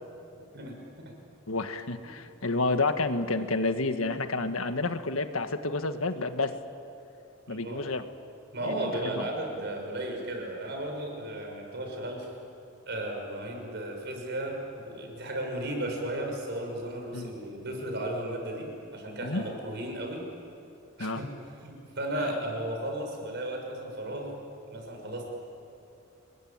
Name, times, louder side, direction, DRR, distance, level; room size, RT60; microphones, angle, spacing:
voice 1, 0.5-1.1 7.5-7.8 8.5-12.3 12.8-20.2 21.0-21.3 21.6-24.4 24.7-25.2, right 1 dB, 55° right, 2 dB, 6.5 m, -35 dB
voice 2, 1.5-6.5 7.5-8.0 8.6-9.3 17.1-17.3 19.2-19.4 21.0-21.2 22.2-22.3, left 3 dB, 90° left, 8 dB, 1.6 m, -30 dB
29.5 x 21.5 x 8.9 m, 2.8 s
head